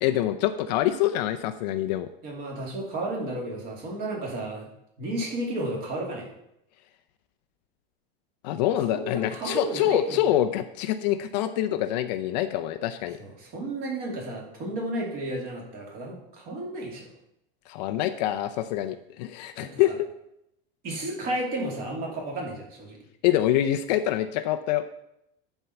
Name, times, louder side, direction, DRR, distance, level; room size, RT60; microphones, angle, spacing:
voice 1, 0.0-2.1 8.4-13.2 17.7-19.9 23.2-24.8, left 12 dB, 50° left, 8 dB, 0.6 m, -25 dB
voice 2, 2.2-4.7 5.0-6.3 8.9-10.2 13.2-17.1 19.6-20.0 20.8-23.0, right 1 dB, 30° right, -1 dB, 2.7 m, -32 dB
11.0 x 4.6 x 6.9 m, 0.81 s
supercardioid pair, 175°, 29 cm